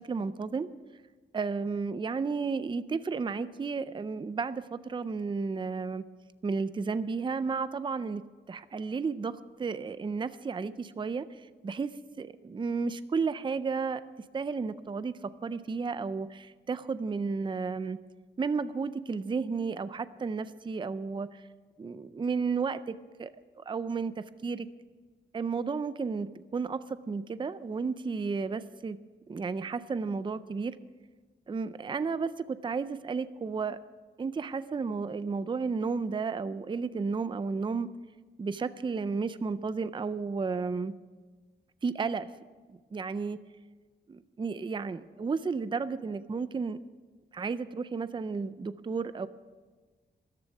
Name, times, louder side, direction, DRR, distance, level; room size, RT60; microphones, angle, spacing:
voice 1, 0.1-0.7 1.3-6.1 6.4-11.3 11.6-14.0 14.3-18.0 18.4-21.4 21.8-23.3 23.6-24.7 25.3-29.0 29.3-30.8 31.5-33.8 34.2-37.9 38.4-41.0 41.8-42.3 42.7-43.4 44.1-46.8 47.3-49.3, right 4 dB, 25° right, 14 dB, 0.4 m, -33 dB
13.5 x 12.5 x 6.1 m, 1.4 s
wide cardioid pair, 170°, 19 cm